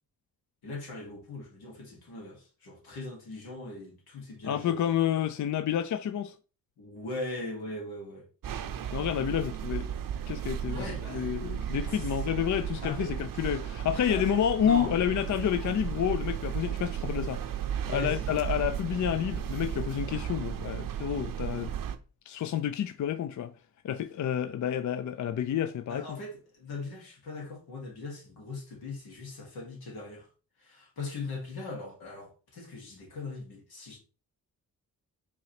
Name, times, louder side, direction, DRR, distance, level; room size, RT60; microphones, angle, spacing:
voice 1, 0.6-4.9 6.8-8.3 10.7-11.3 11.8-12.1 12.8-13.2 14.1-14.9 17.8-18.3 25.9-30.3 30.6-34.0, left 2 dB, 85° left, 1.5 m, -40 dB
voice 2, 4.4-6.3 8.9-9.9 10.3-17.4 17.9-21.7 22.3-23.5 23.8-26.1, left 9 dB, 55° left, 0.4 m, -29 dB
sound 1, 8.4-22.0, right 9 dB, 65° right, 0.6 m, -34 dB
4.8 x 2.9 x 2.9 m
cardioid pair, 55°, 36 cm